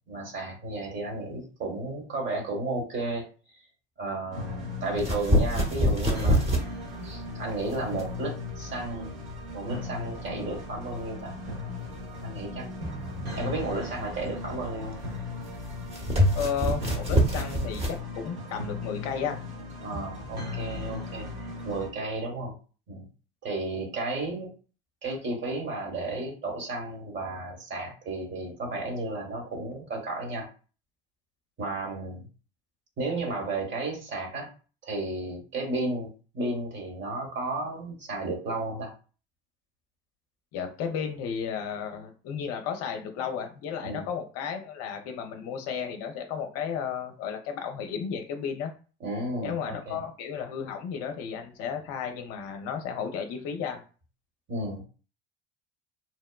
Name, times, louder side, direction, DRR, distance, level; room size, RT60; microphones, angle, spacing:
voice 1, 0.1-3.3 4.0-6.7 7.0-9.1 9.5-11.3 12.2-12.7 13.3-15.0 19.8-22.6 22.9-23.1 23.4-24.5 25.0-30.5 31.6-32.3 33.0-34.5 34.8-38.9 43.8-44.1 49.0-50.0 54.5-54.9, right 2 dB, 40° right, 1 dB, 1.1 m, -33 dB
sound 1, 4.3-21.9, left 3 dB, 75° right, 1.0 m, -37 dB
sound 2, 5.0-18.0, equal, 20° right, 0.9 m, -28 dB
voice 2, 16.3-19.4 40.5-48.7 49.4-53.8, left 7 dB, 55° left, 5 dB, 0.6 m, -33 dB
2.8 x 2.0 x 2.3 m, 0.36 s
hypercardioid pair, 75°, 30 cm